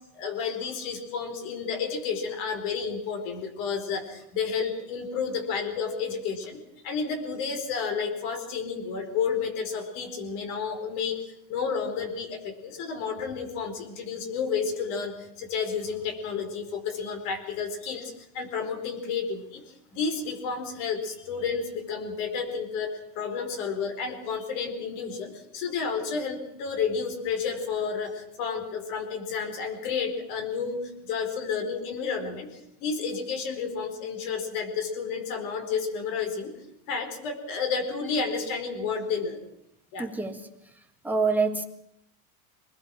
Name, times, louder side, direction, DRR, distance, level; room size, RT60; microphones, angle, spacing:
voice 1, 0.1-19.6 19.9-22.9 23.1-36.5 36.9-39.4 39.9-40.1, left 5 dB, 65° left, 5 dB, 4.8 m, -31 dB
voice 2, 40.0-40.5 40.8-41.6, right 4 dB, 5° right, 4 dB, 1.8 m, -27 dB
24.0 x 20.0 x 6.3 m, 0.78 s
supercardioid pair, 135°, 41 cm